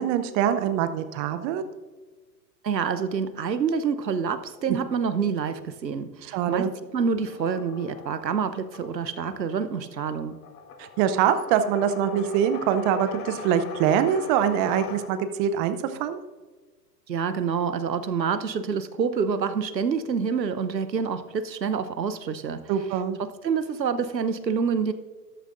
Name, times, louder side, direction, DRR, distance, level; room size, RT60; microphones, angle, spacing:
voice 1, 0.0-1.6 6.3-6.7 10.8-16.2 22.7-23.2, right 9 dB, 25° right, 11 dB, 0.6 m, -24 dB
voice 2, 2.6-10.4 17.1-22.6 23.2-24.9, right 6 dB, 80° right, 12 dB, 0.9 m, -27 dB
sound 1, 7.2-15.5, left 5 dB, 60° left, 2.0 m, -41 dB
13.0 x 12.5 x 2.5 m, 1.4 s
figure-of-eight pair, 100°, 50 cm